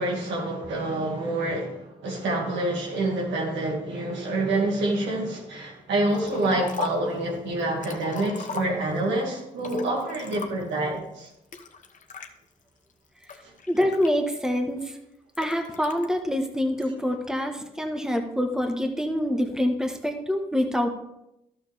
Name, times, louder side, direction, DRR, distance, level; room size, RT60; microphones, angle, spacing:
voice 1, 0.0-11.3, right 2 dB, 80° right, -1 dB, 2.4 m, -27 dB
Liquid, 6.1-7.1 7.6-9.1 9.6-10.8 11.5-12.3 12.9-14.6 15.3-16.1, left 6 dB, 45° left, 1.1 m, -38 dB
voice 2, 13.7-15.0 15.4-20.9, equal, 5° right, 4 dB, 1.5 m, -26 dB
12.0 x 6.9 x 3.6 m, 0.86 s
supercardioid pair, 50°, 19 cm